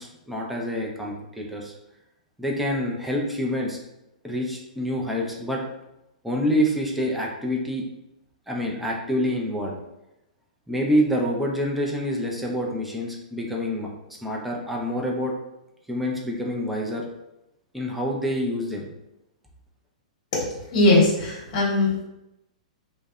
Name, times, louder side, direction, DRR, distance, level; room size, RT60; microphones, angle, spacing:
voice 1, 0.0-1.7 2.4-3.8 4.2-5.6 6.2-7.8 8.5-9.7 10.7-15.3 15.9-17.0 17.7-18.9, equal, ahead, -2 dB, 0.5 m, -27 dB
voice 2, 20.7-22.0, left 2 dB, 45° left, -5 dB, 0.9 m, -19 dB
2.6 x 2.0 x 2.3 m, 0.87 s
hypercardioid pair, 125°, 4 cm